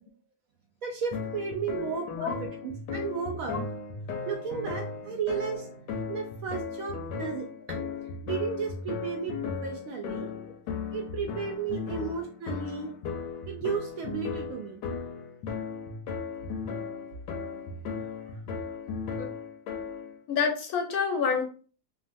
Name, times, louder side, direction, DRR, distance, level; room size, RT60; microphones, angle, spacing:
voice 1, 0.8-3.6 4.1-7.8 8.2-10.3 10.9-12.9 13.5-14.8 17.6-17.7, right 6 dB, 70° right, 2 dB, 0.8 m, -34 dB
sound 1, 1.1-20.2, left 5 dB, 90° left, 1.2 m, -36 dB
voice 2, 20.3-21.4, left 6 dB, 70° left, 3 dB, 1.0 m, -28 dB
3.0 x 2.4 x 2.5 m, 0.39 s
omnidirectional pair, 1.8 m